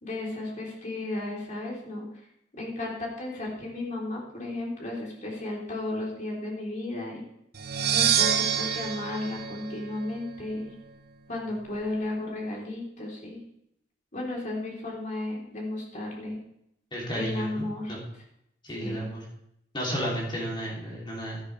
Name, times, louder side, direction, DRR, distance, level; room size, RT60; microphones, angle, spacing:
voice 1, 0.0-2.1 2.5-7.2 7.9-10.7 11.3-13.4 14.1-16.4 17.1-18.0 18.8-19.1, left 2 dB, 45° left, -3 dB, 3.6 m, -34 dB
sound 1, 7.5-10.4, right 8 dB, 60° right, 0.8 m, -27 dB
voice 2, 16.9-18.0 18.6-19.2 19.7-21.4, equal, 25° left, -4 dB, 3.2 m, -32 dB
12.5 x 12.0 x 3.4 m, 0.77 s
head